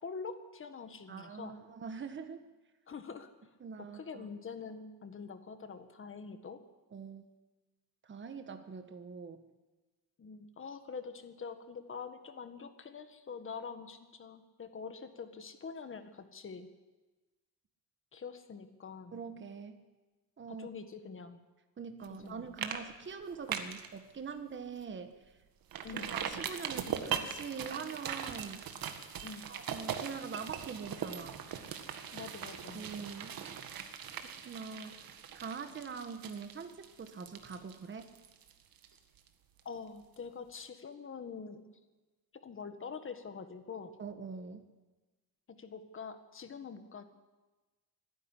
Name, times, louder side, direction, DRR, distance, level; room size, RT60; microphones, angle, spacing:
voice 1, 0.0-1.5 2.9-3.3 3.9-6.6 10.2-16.7 18.1-19.2 20.5-21.4 22.1-22.4 25.8-26.1 29.2-29.5 32.1-32.8 39.6-41.6 42.4-43.9 45.6-47.0, left 5 dB, 35° left, 9 dB, 1.7 m, -45 dB
voice 2, 1.1-2.4 3.6-4.3 6.9-7.2 8.0-9.4 19.1-19.8 20.4-20.7 21.8-25.1 25.9-28.6 29.5-31.4 32.7-33.4 34.4-35.0 35.3-38.1 44.0-44.7, right 5 dB, 30° right, 7 dB, 1.4 m, -43 dB
sound 1, 22.0-22.3 22.6-22.8 23.1-23.9 24.3-24.4 24.8-24.9 25.7-39.3 39.6-39.7, right 8 dB, 65° right, 1.8 m, -40 dB
25.0 x 10.5 x 9.9 m, 1.2 s
cardioid pair, 150°, 37 cm